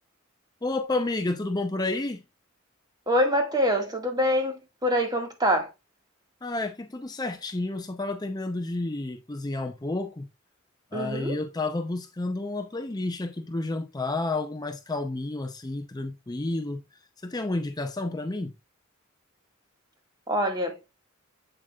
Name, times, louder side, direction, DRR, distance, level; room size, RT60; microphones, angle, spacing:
voice 1, 0.6-2.2 6.4-10.3 10.9-18.5, left 2 dB, 20° left, 0.6 m, -31 dB
voice 2, 3.1-5.7 10.9-11.4 20.3-20.8, equal, 20° right, 1.8 m, -25 dB
8.0 x 7.2 x 2.3 m
head